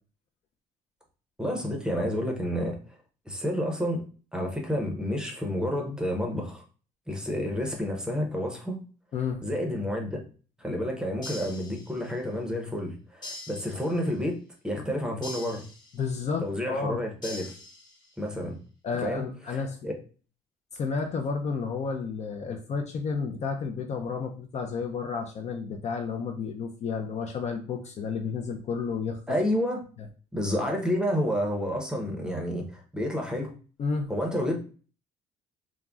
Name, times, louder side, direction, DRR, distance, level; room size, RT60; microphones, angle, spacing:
voice 1, 1.4-3.0 3.2-4.0 4.3-6.6 7.1-8.8 9.4-10.2 10.6-15.6 16.4-17.5 18.2-18.6 19.0-19.2 19.5-19.9 29.3-29.8 30.3-33.5 34.1-34.6, equal, 5° right, 1 dB, 0.6 m, -30 dB
sound 1, 11.2-12.3 13.2-14.3 15.2-16.3 17.2-18.3, left 2 dB, 25° left, 1.0 m, -43 dB
voice 2, 15.9-17.0 18.8-19.8 20.7-29.2 33.8-34.1, left 5 dB, 40° left, 4 dB, 0.4 m, -31 dB
3.6 x 2.0 x 2.3 m, 0.38 s
cardioid pair, 110°, 17 cm